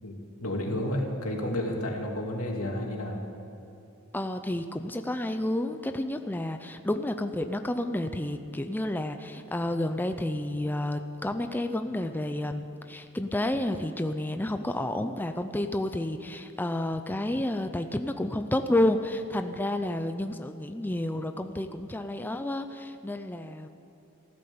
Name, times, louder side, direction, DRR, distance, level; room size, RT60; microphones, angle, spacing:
voice 1, 0.0-3.2, left 1 dB, 85° left, 0 dB, 2.7 m, -31 dB
voice 2, 4.1-23.7, left 1 dB, 10° left, 7 dB, 0.5 m, -30 dB
15.5 x 12.5 x 7.0 m, 2.8 s
head